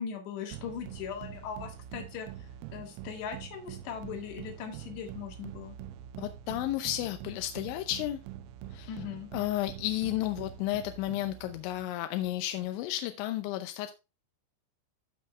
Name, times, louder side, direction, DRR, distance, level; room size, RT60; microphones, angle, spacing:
voice 1, 0.0-5.8 8.9-9.3, left 7 dB, 65° left, 3 dB, 3.6 m, -39 dB
sound 1, 0.5-12.0, right 11 dB, 85° right, 3.2 m, -45 dB
voice 2, 6.2-8.2 8.7-8.9 9.3-13.9, left 14 dB, 85° left, 8 dB, 2.8 m, -32 dB
15.0 x 5.8 x 2.3 m, 0.27 s
omnidirectional pair, 5.8 m